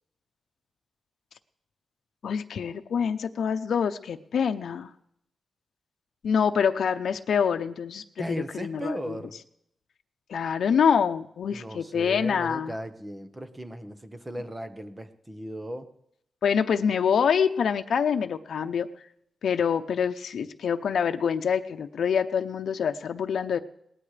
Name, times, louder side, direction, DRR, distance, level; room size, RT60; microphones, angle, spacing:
voice 1, 2.2-4.9 6.2-9.2 10.3-12.7 16.4-18.9 19.4-23.6, left 7 dB, 80° left, 7 dB, 0.7 m, -26 dB
voice 2, 8.2-9.4 11.5-15.9, right 1 dB, 15° right, 9 dB, 1.2 m, -36 dB
22.0 x 18.5 x 3.3 m, 0.77 s
wide cardioid pair, 120°, 0 cm